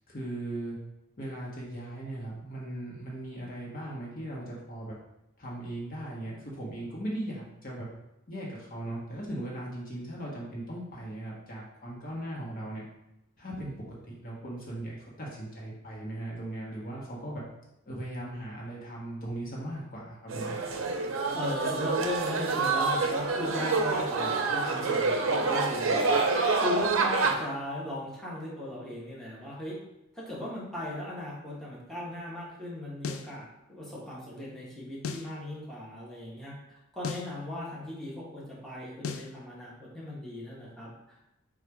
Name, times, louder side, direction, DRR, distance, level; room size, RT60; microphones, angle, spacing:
voice 1, 0.1-0.8 1.2-5.0 5.4-7.9 8.3-12.8 13.4-13.7 14.1-17.4 17.9-20.6, right 1 dB, 45° left, -4 dB, 1.1 m, -38 dB
sound 1, 20.3-27.3, right 4 dB, 65° right, 0.6 m, -27 dB
voice 2, 21.3-26.1 26.6-29.8 30.1-36.5 36.9-41.3, left 1 dB, ahead, -8 dB, 1.0 m, -37 dB
sound 2, 33.0-33.3 35.0-35.3 37.0-37.3 39.0-39.3, left 5 dB, 80° left, 0.4 m, -35 dB
4.0 x 2.4 x 4.6 m, 0.89 s
head